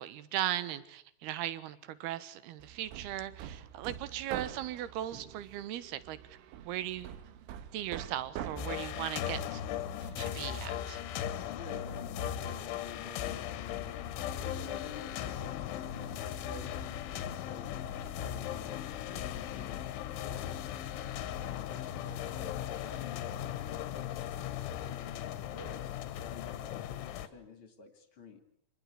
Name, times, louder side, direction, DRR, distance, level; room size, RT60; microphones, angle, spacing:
voice 1, 0.0-6.4 6.6-7.2 7.7-9.6 10.2-11.0, right 12 dB, 70° right, 15 dB, 2.8 m, -38 dB
Hammer, 2.6-10.4, right 10 dB, 85° right, 3.8 m, -46 dB
sound 1, 8.6-27.3, left 10 dB, 85° left, 3.8 m, -38 dB
voice 2, 11.4-14.0 14.4-17.8 18.1-25.9 26.3-28.4, left 3 dB, 35° left, 8 dB, 2.5 m, -51 dB
27.0 x 20.0 x 8.8 m, 0.69 s
omnidirectional pair, 5.4 m